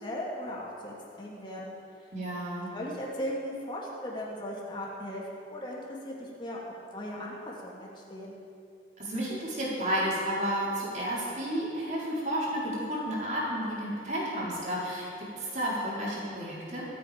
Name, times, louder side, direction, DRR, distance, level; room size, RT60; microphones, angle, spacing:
voice 1, 0.0-1.7 2.7-5.2 5.5-6.6 6.9-8.4, left 1 dB, 25° left, -4 dB, 2.6 m, -37 dB
voice 2, 2.1-2.7 9.0-16.9, equal, 40° right, -6 dB, 4.2 m, -32 dB
24.5 x 8.5 x 5.2 m, 2.6 s
head